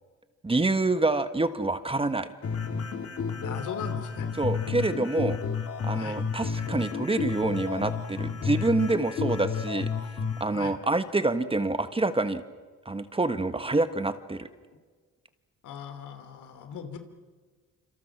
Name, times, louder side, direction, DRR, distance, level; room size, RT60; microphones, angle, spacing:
voice 1, 0.4-2.3 4.4-5.4 5.8-9.9 10.4-12.4 12.8-14.5, right 2 dB, 20° right, 10 dB, 1.5 m, -27 dB
sound 1, 2.4-10.4, left 6 dB, 50° left, 3.0 m, -31 dB
voice 2, 3.4-4.3 5.9-6.2 10.5-10.8 15.6-17.0, left 7 dB, 80° left, 8 dB, 3.2 m, -39 dB
27.5 x 26.5 x 6.1 m, 1.5 s
cardioid pair, 90°, 30 cm